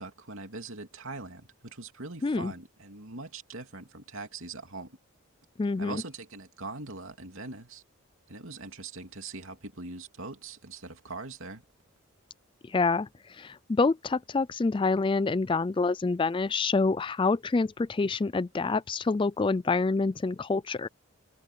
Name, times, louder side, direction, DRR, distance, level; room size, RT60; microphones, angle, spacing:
voice 1, 0.0-5.0 5.8-7.8 8.3-11.6, right 3 dB, 65° right, 2.9 m, -42 dB
voice 2, 2.2-2.5 5.6-6.0 12.7-20.9, left 3 dB, 20° left, 0.3 m, -27 dB
head